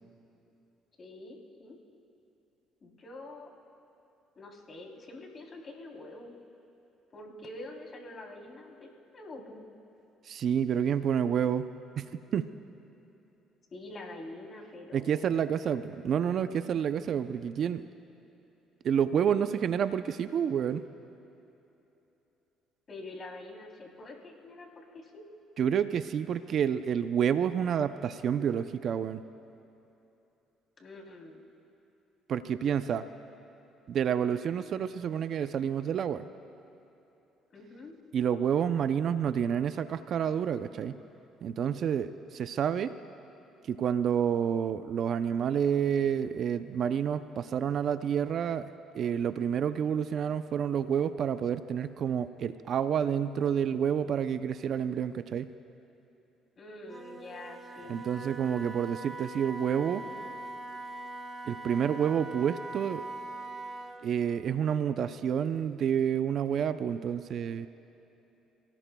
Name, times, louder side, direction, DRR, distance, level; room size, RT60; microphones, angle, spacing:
voice 1, 1.0-1.8 2.8-3.5 4.3-6.3 7.1-9.7 13.7-15.5 22.9-25.2 30.8-31.4 37.5-37.9 56.6-58.0, left 2 dB, 45° left, 0 dB, 3.4 m, -46 dB
voice 2, 10.3-12.5 14.9-17.9 18.8-20.8 25.6-29.2 32.3-33.1 33.9-36.3 38.1-41.0 41.4-42.9 43.7-48.7 48.9-55.5 57.9-60.0 61.5-63.0 64.0-67.7, right 8 dB, 60° right, 11 dB, 0.6 m, -29 dB
Wind instrument woodwind instrument, 56.8-64.0, right 2 dB, 25° right, 2.5 m, -42 dB
29.0 x 18.0 x 2.3 m, 3.0 s
supercardioid pair, 75°, 0 cm